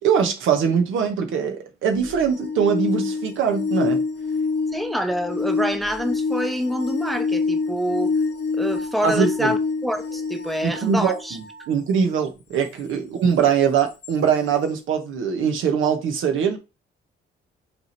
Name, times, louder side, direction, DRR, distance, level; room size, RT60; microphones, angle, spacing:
voice 1, 0.0-4.0 9.0-9.5 10.6-16.6, right 7 dB, 85° right, 1.5 m, -22 dB
sound 1, 2.0-11.7 14.0-14.1, left 4 dB, 60° left, 1.0 m, -27 dB
voice 2, 4.7-8.1 8.6-11.4, equal, ahead, 0.8 m, -26 dB
5.8 x 3.6 x 4.5 m
cardioid pair, 90°, 20 cm